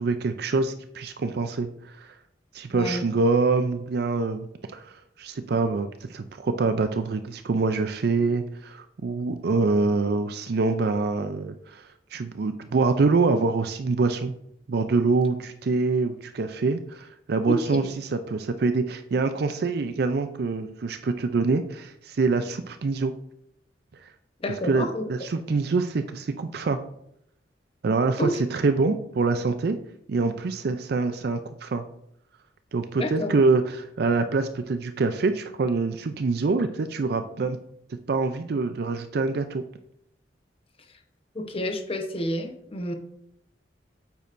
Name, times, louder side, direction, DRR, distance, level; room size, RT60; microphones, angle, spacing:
voice 1, 0.0-2.1 2.5-4.5 4.7-14.3 14.7-23.1 24.7-26.8 27.8-29.8 30.1-31.9 32.7-37.6 38.1-39.6, right 3 dB, 60° right, 9 dB, 0.4 m, -25 dB
voice 2, 2.7-3.0 17.5-17.9 24.4-25.0 28.2-28.4 32.9-33.3 41.3-42.9, left 1 dB, 35° left, 5 dB, 0.9 m, -29 dB
8.6 x 8.2 x 2.6 m, 0.75 s
head